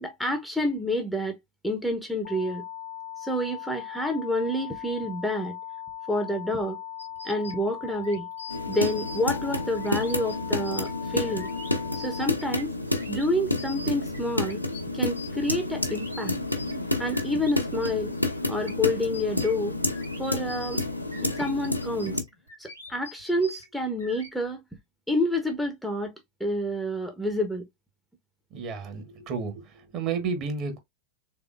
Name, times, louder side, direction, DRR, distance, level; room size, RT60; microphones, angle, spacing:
voice 1, 0.0-1.4 1.6-2.6 3.2-5.6 6.1-6.8 7.2-8.3 8.7-11.5 12.0-12.7 13.1-14.6 14.9-16.4 17.0-18.1 18.5-19.7 20.2-20.8 21.2-22.2 22.6-24.6 25.1-26.1 26.4-27.7, left 1 dB, ahead, 0.7 m, -28 dB
sound 1, 2.2-12.3, left 11 dB, 55° left, 0.4 m, -39 dB
sound 2, 7.0-17.5 17.8-24.3, equal, 90° right, 2.0 m, -44 dB
sound 3, 8.5-22.2, left 2 dB, 90° left, 0.8 m, -30 dB
voice 2, 28.5-29.6 29.9-30.8, right 5 dB, 35° right, 1.3 m, -31 dB
3.6 x 3.5 x 2.3 m
figure-of-eight pair, 90°, 0 cm